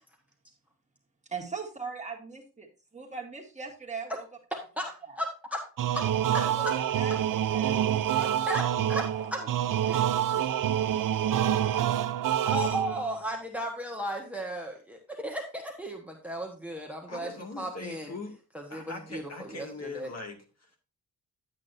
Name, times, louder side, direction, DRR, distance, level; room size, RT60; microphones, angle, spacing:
voice 1, 1.2-4.3 5.0-5.2 6.3-7.8 8.3-9.6, right 4 dB, 20° right, -1 dB, 2.0 m, -40 dB
voice 2, 4.5-5.6 5.9-6.0 6.6-6.7 7.7-7.8 8.1-8.6 8.9-9.0 9.3-9.4 9.9-10.4 12.4-17.3 17.6-18.1 18.7-19.7 19.9-20.1, equal, 5° right, 2 dB, 1.3 m, -35 dB
sound 1, 5.8-13.2, right 10 dB, 70° right, 0.6 m, -27 dB
voice 3, 17.1-18.4 18.7-20.8, left 3 dB, 50° left, 2 dB, 2.2 m, -41 dB
10.5 x 8.4 x 2.7 m, 0.35 s
wide cardioid pair, 120°, 34 cm